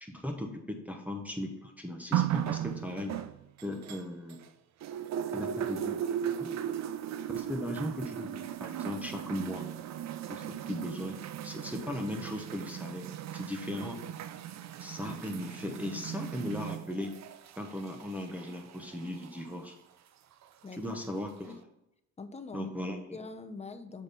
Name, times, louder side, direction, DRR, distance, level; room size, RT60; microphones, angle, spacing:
voice 1, 0.0-3.1 3.6-4.4 5.3-6.0 6.4-6.8 7.3-9.6 10.3-11.2 11.4-14.0 14.8-17.2 17.6-19.7 20.7-21.6 22.5-23.2, left 1 dB, 5° right, 1 dB, 1.1 m, -37 dB
sound 1, 2.1-4.5 4.8-19.5 20.4-20.5, right 10 dB, 65° right, 0.6 m, -37 dB
voice 2, 20.6-21.0 21.4-21.6 22.2-22.7 23.1-24.0, left 4 dB, 20° left, 8 dB, 0.8 m, -43 dB
7.6 x 5.1 x 4.2 m, 0.85 s
cardioid pair, 90°, 30 cm